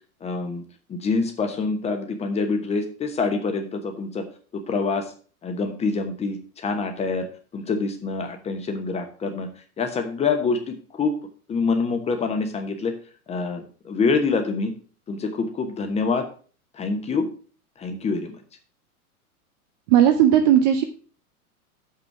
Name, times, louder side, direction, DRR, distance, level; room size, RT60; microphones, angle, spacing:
voice 1, 0.2-0.6 0.9-4.2 4.5-5.1 5.4-7.3 7.5-9.5 9.8-11.1 11.5-12.9 13.3-14.7 15.1-16.3 16.7-17.3 17.8-18.4, left 4 dB, 15° left, 6 dB, 1.0 m, -26 dB
voice 2, 19.9-20.8, right 10 dB, 30° right, 7 dB, 0.5 m, -16 dB
6.7 x 5.7 x 5.8 m, 0.41 s
figure-of-eight pair, 95°, 45 cm